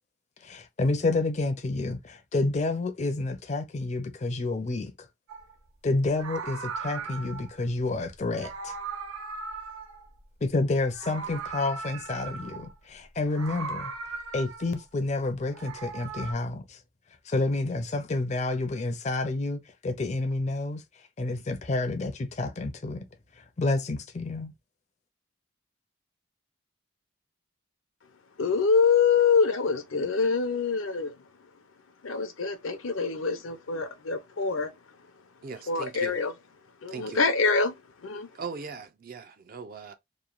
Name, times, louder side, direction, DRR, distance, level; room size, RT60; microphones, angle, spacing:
voice 1, 0.4-4.9 5.8-8.7 10.4-13.9 14.3-16.8 17.2-20.8 21.2-23.0 23.4-24.5, left 2 dB, 35° left, 0.4 m, -29 dB
Meow, 5.3-5.5 6.1-7.6 8.3-10.5 10.8-12.7 13.3-14.8 15.4-16.3, right 4 dB, 90° right, 0.6 m, -38 dB
voice 2, 28.4-31.2 32.0-34.7 35.7-36.3 36.8-38.3, left 5 dB, 80° left, 0.6 m, -25 dB
voice 3, 35.4-36.2 36.9-37.2 38.3-40.0, right 5 dB, 45° right, 0.3 m, -39 dB
3.0 x 2.2 x 2.3 m
head